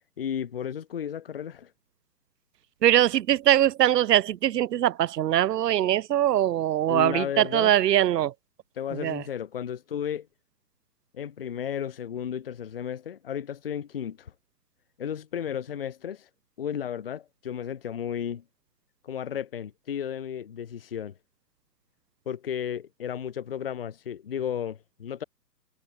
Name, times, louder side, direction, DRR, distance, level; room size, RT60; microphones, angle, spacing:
voice 1, 0.2-1.7 6.9-7.7 8.8-10.3 11.1-14.3 15.0-16.3 16.6-18.4 19.0-21.1 22.3-25.2, left 9 dB, 40° left, 0.4 m, -33 dB
voice 2, 2.8-8.3 9.0-9.2, right 12 dB, 75° right, 0.5 m, -22 dB
figure-of-eight pair, 135°, 48 cm